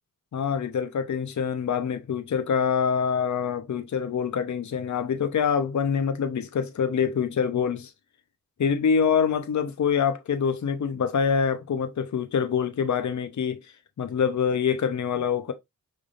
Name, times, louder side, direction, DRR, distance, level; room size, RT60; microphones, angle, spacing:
voice 1, 0.3-7.9 8.6-13.6 14.0-15.5, left 7 dB, 55° left, 0.7 m, -25 dB
5.3 x 3.4 x 2.4 m
cardioid pair, 55°, 34 cm